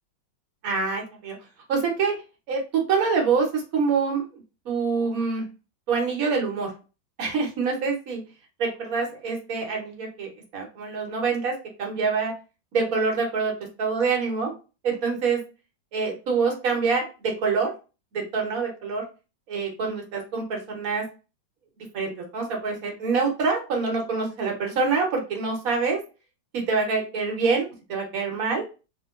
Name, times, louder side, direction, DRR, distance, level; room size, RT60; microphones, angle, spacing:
voice 1, 0.6-1.3 1.7-2.2 2.5-4.2 4.6-5.5 5.9-6.7 7.2-8.2 8.6-12.3 12.7-13.5 13.8-14.5 14.8-15.4 15.9-17.7 18.1-19.0 19.5-21.1 21.9-26.0 26.5-28.6, right 4 dB, 55° right, 1 dB, 1.3 m, -25 dB
3.2 x 2.9 x 2.3 m, 0.32 s
omnidirectional pair, 2.0 m